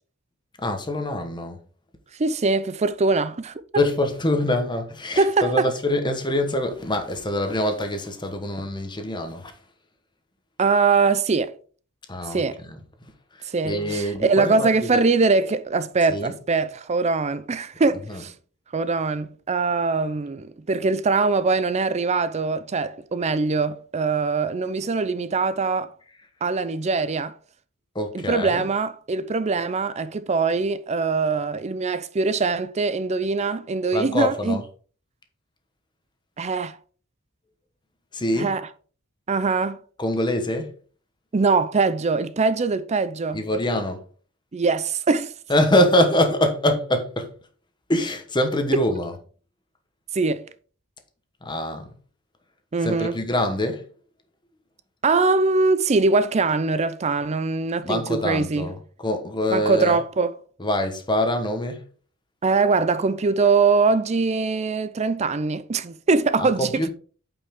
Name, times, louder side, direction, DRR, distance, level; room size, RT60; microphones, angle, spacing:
voice 1, 0.6-1.7 3.7-9.5 12.1-12.8 13.6-15.0 16.1-16.3 18.1-18.2 27.9-28.6 33.9-34.6 38.1-38.5 40.0-40.7 43.3-44.0 45.5-47.3 47.9-49.1 51.4-51.9 52.8-53.9 57.8-60.0 60.6-61.8 66.4-66.9, left 1 dB, 20° left, 1.1 m, -24 dB
voice 2, 2.2-3.6 5.2-5.7 10.6-11.5 12.3-12.6 13.4-18.3 18.7-25.9 26.4-27.3 28.1-34.6 36.4-36.8 38.4-38.7 39.3-39.8 41.3-43.4 44.5-45.3 50.1-50.5 52.7-53.2 55.0-58.7 59.5-60.3 62.4-66.9, right 4 dB, 30° right, 0.5 m, -22 dB
8.5 x 5.4 x 3.6 m
head